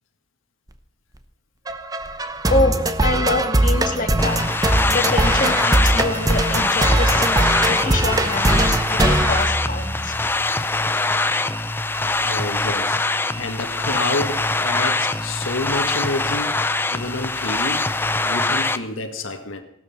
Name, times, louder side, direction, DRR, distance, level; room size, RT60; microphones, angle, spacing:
sound 1, 1.7-10.2, right 1 dB, 20° right, 0.8 m, -21 dB
voice 1, 3.0-4.4 4.9-10.2, left 3 dB, 40° left, 4 dB, 1.8 m, -25 dB
sound 2, 4.2-18.8, left 2 dB, 10° left, 0.5 m, -23 dB
voice 2, 12.2-13.0 13.3-16.6 16.9-17.8 18.2-19.6, left 2 dB, 90° left, 5 dB, 1.7 m, -28 dB
17.5 x 12.5 x 5.8 m, 0.83 s
head